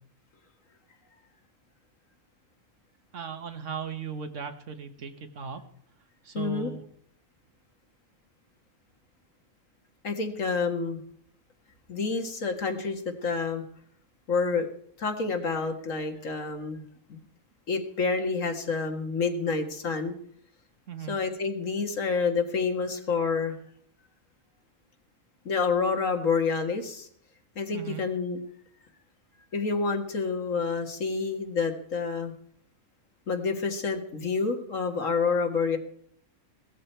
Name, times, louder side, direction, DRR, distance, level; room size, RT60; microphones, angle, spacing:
voice 1, 3.1-5.6 6.2-6.8 20.9-21.2 27.7-28.0, right 7 dB, 70° right, 8 dB, 1.6 m, -37 dB
voice 2, 6.3-6.7 10.0-11.0 11.9-13.6 14.3-14.7 15.0-17.2 17.7-20.1 21.1-23.6 25.5-27.1 27.6-28.4 29.5-32.3 33.3-35.8, left 4 dB, 80° left, 5 dB, 2.1 m, -28 dB
17.5 x 13.5 x 4.5 m, 0.63 s
omnidirectional pair, 1.3 m